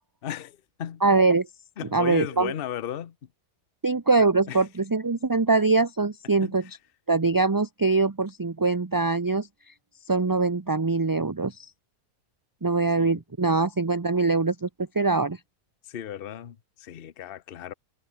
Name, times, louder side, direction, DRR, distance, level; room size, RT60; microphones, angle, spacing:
voice 1, 0.2-1.0 1.8-3.1 4.5-4.6 6.4-6.6 13.0-13.2 15.8-17.7, left 10 dB, 45° left, 0.9 m, -35 dB
voice 2, 1.0-1.5 1.9-2.5 3.8-6.7 7.1-9.5 10.1-11.7 12.6-14.7 14.9-15.4, right 3 dB, 20° right, 0.6 m, -23 dB
omnidirectional pair, 1.5 m